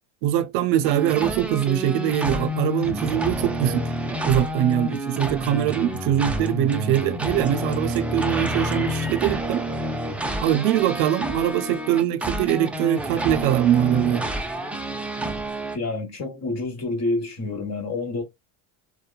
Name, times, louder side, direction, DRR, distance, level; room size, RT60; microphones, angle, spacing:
voice 1, 0.2-3.9 4.2-9.6 10.4-14.3, right 11 dB, 75° right, 0.5 m, -22 dB
sound 1, 0.8-15.8, equal, 5° right, 0.3 m, -29 dB
voice 2, 15.7-18.2, left 2 dB, 35° left, 1.1 m, -28 dB
2.8 x 2.2 x 2.2 m
supercardioid pair, 85°, 44 cm